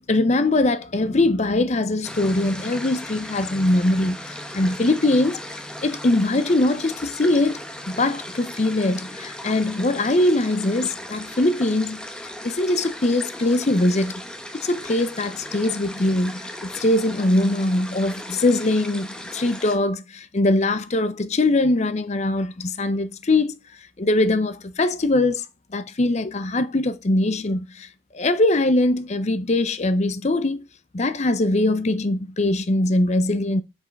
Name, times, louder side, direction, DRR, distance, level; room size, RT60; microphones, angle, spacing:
voice 1, 0.1-7.6 7.9-12.1 12.4-14.1 14.5-23.6 24.0-25.4 25.7-27.9 28.1-30.7 30.9-33.6, left 2 dB, 35° left, 0.6 m, -22 dB
sound 1, 2.0-19.8, left 1 dB, 5° left, 1.0 m, -37 dB
6.2 x 5.3 x 5.2 m
head